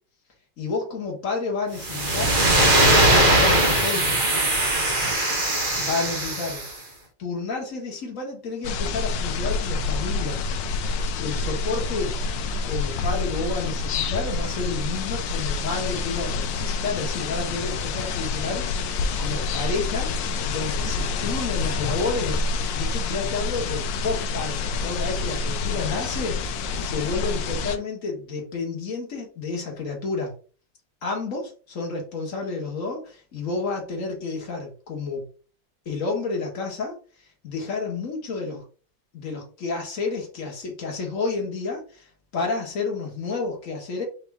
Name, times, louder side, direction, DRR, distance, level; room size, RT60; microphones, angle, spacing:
voice 1, 0.6-2.4 3.0-4.2 5.3-6.6 7.2-10.4 11.2-12.1 12.7-18.9 19.2-20.1 20.5-22.4 22.7-30.3 31.0-35.2 35.9-37.0 37.4-38.6 39.1-44.0, left 4 dB, 45° left, 1.7 m, -30 dB
sound 1, 1.8-6.7, right 1 dB, 35° right, 0.9 m, -20 dB
sound 2, 8.6-27.8, left 4 dB, 80° left, 1.3 m, -27 dB
5.3 x 2.7 x 3.5 m
omnidirectional pair, 2.1 m